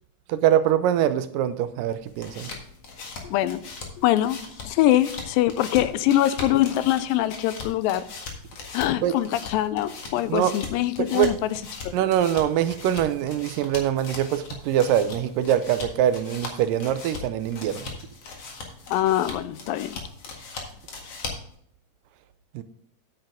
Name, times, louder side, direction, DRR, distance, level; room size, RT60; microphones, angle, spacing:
voice 1, 0.3-2.5 9.0-9.2 10.3-10.5 11.0-11.3 11.9-17.9 22.6-22.7, right 11 dB, 80° right, 2.3 m, -23 dB
sound 1, 2.0-21.6, left 4 dB, 50° left, 2.4 m, -39 dB
voice 2, 3.2-3.6 4.0-8.0 8.7-11.9 18.9-20.0, left 13 dB, 90° left, 2.3 m, -23 dB
9.0 x 8.9 x 3.7 m
omnidirectional pair, 4.0 m